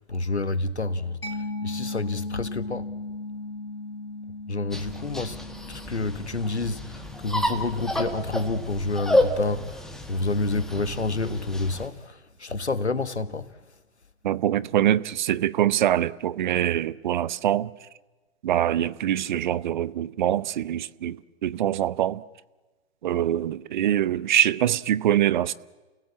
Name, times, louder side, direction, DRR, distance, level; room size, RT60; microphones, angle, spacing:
voice 1, 0.0-2.9 4.5-13.5, left 3 dB, 90° left, 1.4 m, -29 dB
Mallet percussion, 1.2-8.6, left 2 dB, 60° left, 3.4 m, -37 dB
sound 1, 4.7-11.9, left 1 dB, ahead, 1.6 m, -30 dB
voice 2, 14.2-17.7 18.4-22.2 23.0-25.5, right 11 dB, 45° right, 0.8 m, -24 dB
29.5 x 17.0 x 8.6 m
figure-of-eight pair, 125°, 33 cm